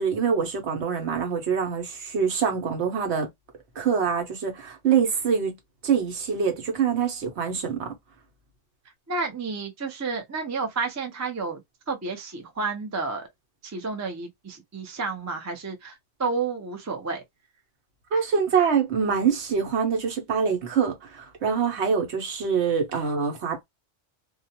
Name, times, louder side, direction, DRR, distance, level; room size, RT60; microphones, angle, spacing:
voice 1, 0.0-3.3 3.8-5.6 5.8-7.9 18.1-23.6, right 6 dB, 65° right, 1.0 m, -25 dB
voice 2, 9.1-11.6 11.9-13.3 13.6-17.2, right 4 dB, 20° right, 0.4 m, -31 dB
2.4 x 2.1 x 2.6 m
omnidirectional pair, 1.3 m